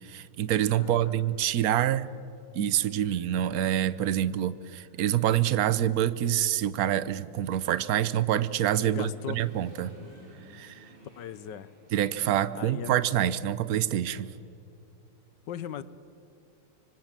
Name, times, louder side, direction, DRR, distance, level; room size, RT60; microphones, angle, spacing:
voice 1, 0.0-2.1 2.5-9.9 10.5-10.9 11.9-14.3, right 11 dB, 60° right, 16 dB, 1.2 m, -26 dB
voice 2, 0.8-1.1 8.8-9.4 11.2-11.7 12.5-13.1 15.5-15.8, left 10 dB, 75° left, 16 dB, 1.6 m, -38 dB
Human voice / Motorcycle, 2.0-2.1 2.6-4.4 4.7-13.3, equal, 90° right, 6.4 m, -57 dB
26.0 x 24.0 x 7.5 m, 2.7 s
omnidirectional pair, 2.0 m